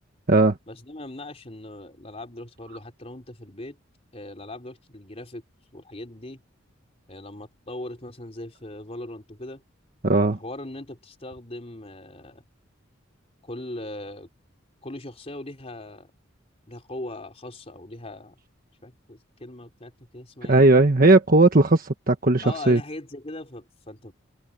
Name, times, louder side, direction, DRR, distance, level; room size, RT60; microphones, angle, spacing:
voice 1, 0.7-3.8 4.1-5.4 5.7-6.4 7.1-9.6 10.2-12.4 13.4-14.3 14.8-16.1 16.7-18.4 18.8-20.6 22.4-24.1, left 1 dB, 30° left, 3.7 m, -39 dB
voice 2, 10.0-10.4 20.5-22.8, right 2 dB, 45° right, 1.4 m, -17 dB
open air
head